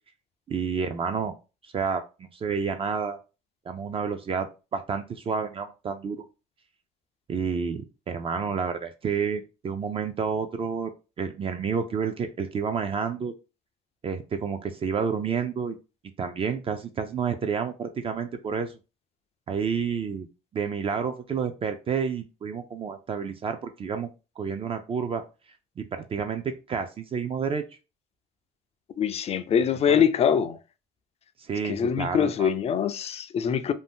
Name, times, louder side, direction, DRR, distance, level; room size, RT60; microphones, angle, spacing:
voice 1, 0.5-1.3 1.6-3.2 3.7-6.2 7.3-10.9 11.2-13.3 14.0-15.8 16.2-18.8 19.5-20.3 20.5-24.1 24.4-25.2 25.8-27.7 29.9-30.0 31.4-32.5, right 6 dB, 35° right, 0.4 m, -30 dB
voice 2, 29.0-30.6 31.6-33.7, left 8 dB, 40° left, 0.4 m, -24 dB
2.6 x 2.0 x 3.4 m
cardioid pair, 110°, 17 cm